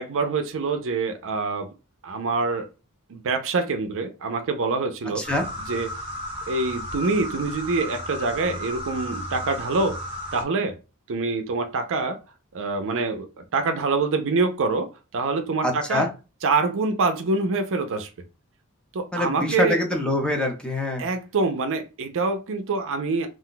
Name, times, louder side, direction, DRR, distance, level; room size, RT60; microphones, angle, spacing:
voice 1, 0.0-1.7 2.0-2.7 3.1-5.3 5.7-5.9 6.5-10.0 10.3-10.8 11.1-12.2 12.5-16.1 16.4-18.1 18.9-19.8 21.0-23.3, right 3 dB, 60° right, 0.5 m, -25 dB
voice 2, 5.2-5.5 15.6-16.1 19.1-21.0, left 1 dB, 5° left, 0.6 m, -24 dB
sound 1, 5.2-10.4, equal, 20° right, 1.1 m, -34 dB
2.5 x 2.2 x 3.8 m
head